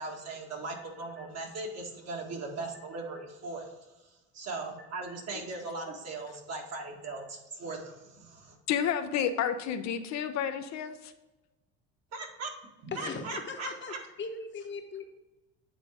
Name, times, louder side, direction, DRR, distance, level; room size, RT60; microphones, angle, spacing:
voice 1, 0.0-8.6 12.1-12.5 12.8-14.0, right 3 dB, 50° right, 0 dB, 2.1 m, -39 dB
voice 2, 8.7-11.0, left 8 dB, 55° left, 8 dB, 0.7 m, -30 dB
voice 3, 12.9-15.1, left 4 dB, 35° left, 4 dB, 1.1 m, -39 dB
8.9 x 3.9 x 4.9 m, 1.1 s
hypercardioid pair, 80°, 33 cm